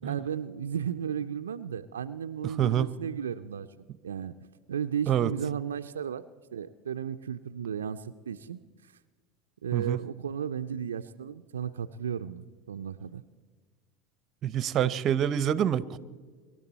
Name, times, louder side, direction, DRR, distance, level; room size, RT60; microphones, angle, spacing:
voice 1, 0.0-3.7 4.0-4.3 4.7-6.2 6.5-8.6 9.6-13.2 14.8-14.9, right 8 dB, 85° right, 8 dB, 0.4 m, -34 dB
voice 2, 2.4-2.9 5.1-5.3 9.7-10.0 14.4-16.0, right 10 dB, 45° right, 18 dB, 0.7 m, -26 dB
25.0 x 12.0 x 4.1 m, 1.5 s
hypercardioid pair, 80°, 0 cm